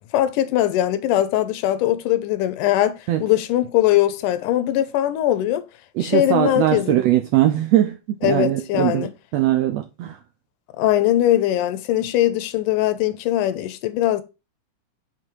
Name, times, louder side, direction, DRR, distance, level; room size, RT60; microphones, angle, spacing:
voice 1, 0.1-5.7 6.0-7.1 8.2-9.1 10.8-14.2, left 13 dB, 80° left, 2.2 m, -21 dB
voice 2, 6.0-9.1 9.3-10.2, right 13 dB, 85° right, 1.5 m, -20 dB
7.5 x 4.2 x 4.6 m
omnidirectional pair, 3.7 m